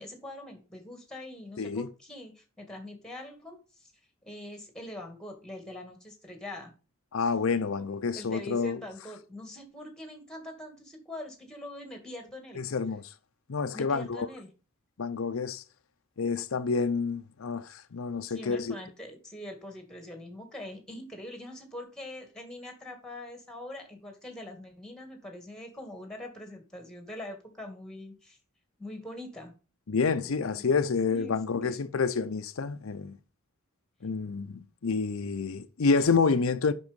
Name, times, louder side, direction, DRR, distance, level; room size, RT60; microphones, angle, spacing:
voice 1, 0.0-3.6 4.3-6.7 8.2-12.6 13.7-14.5 18.3-28.4 28.8-29.5 30.4-30.6 31.1-31.7, left 1 dB, 5° left, 2.4 m, -43 dB
voice 2, 1.6-1.9 7.1-8.8 12.6-13.0 13.5-14.3 15.0-15.6 16.2-18.7 29.9-33.1 34.0-36.7, left 4 dB, 75° left, 0.6 m, -28 dB
7.9 x 6.1 x 5.2 m
head